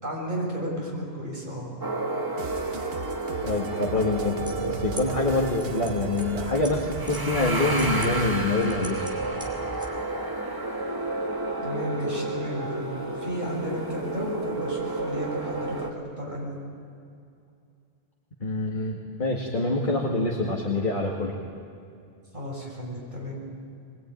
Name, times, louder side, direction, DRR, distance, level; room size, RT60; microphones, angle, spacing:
voice 1, 0.0-1.7 11.6-15.9 16.2-16.6 22.3-23.3, equal, 50° right, -3 dB, 6.7 m, -33 dB
sound 1, 1.8-15.9, right 2 dB, 20° right, 1.7 m, -31 dB
sound 2, 2.4-8.7, right 4 dB, 70° right, 1.2 m, -38 dB
voice 2, 3.4-9.0 18.4-21.4, left 2 dB, 50° left, -1 dB, 2.3 m, -26 dB
sound 3, 4.4-9.9, right 1 dB, 5° right, 3.2 m, -41 dB
23.0 x 21.5 x 9.3 m, 2.4 s
omnidirectional pair, 1.0 m